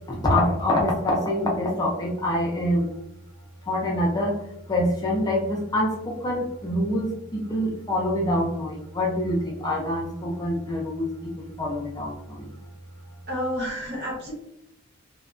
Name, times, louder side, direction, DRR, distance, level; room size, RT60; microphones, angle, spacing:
voice 1, 0.1-2.9 3.7-4.4 4.7-11.1 11.4-12.5, left 1 dB, 20° left, -3 dB, 0.4 m, -25 dB
voice 2, 13.3-14.3, equal, 50° right, -4 dB, 1.0 m, -30 dB
2.8 x 2.2 x 2.4 m, 0.82 s
head